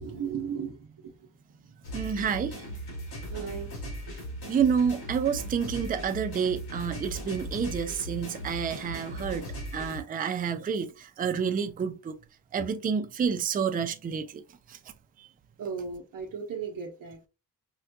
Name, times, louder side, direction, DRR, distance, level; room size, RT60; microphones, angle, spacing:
voice 1, 0.0-1.9 3.3-3.7 12.6-12.7 15.6-17.3, right 6 dB, 60° right, 0.7 m, -37 dB
sound 1, 1.8-10.0, right 1 dB, 90° left, 1.7 m, -38 dB
voice 2, 1.9-2.6 4.5-12.2 12.5-14.4 14.7-14.8 15.2-15.3, right 7 dB, 25° right, 0.3 m, -29 dB
4.7 x 2.2 x 2.6 m
wide cardioid pair, 115°, 38 cm